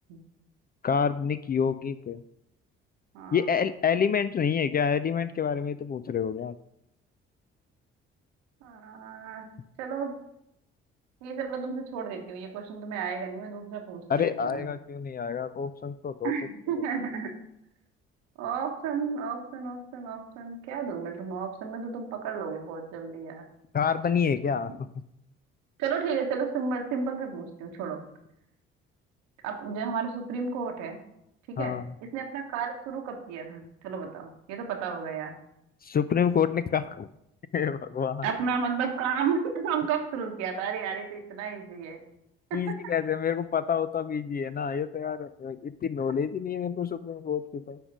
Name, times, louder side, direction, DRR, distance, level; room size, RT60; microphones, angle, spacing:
voice 1, 0.8-2.2 3.3-6.5 14.1-16.3 23.7-24.7 31.6-31.8 35.8-37.1 37.5-38.3 42.5-47.8, left 7 dB, 30° left, 13 dB, 0.4 m, -28 dB
voice 2, 3.1-3.6 8.6-9.4 9.8-10.1 11.2-14.7 16.2-17.3 18.4-23.4 25.8-28.0 29.4-31.0 31.5-35.4 38.2-42.0 42.5-42.7, right 6 dB, 75° right, 2 dB, 1.2 m, -32 dB
9.9 x 3.7 x 5.3 m, 0.81 s
hypercardioid pair, 50°, 30 cm